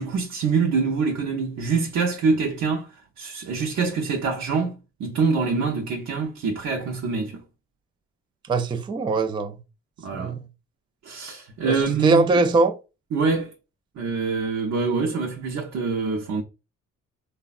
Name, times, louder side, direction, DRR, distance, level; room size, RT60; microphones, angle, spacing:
voice 1, 0.0-7.4 10.0-10.4 11.0-12.3 13.1-13.5 14.0-16.4, right 4 dB, 65° right, 0.6 m, -25 dB
voice 2, 8.5-9.6 10.1-10.4 11.6-12.8, right 3 dB, 15° right, 0.3 m, -21 dB
3.2 x 2.1 x 2.4 m
cardioid pair, 90°, 30 cm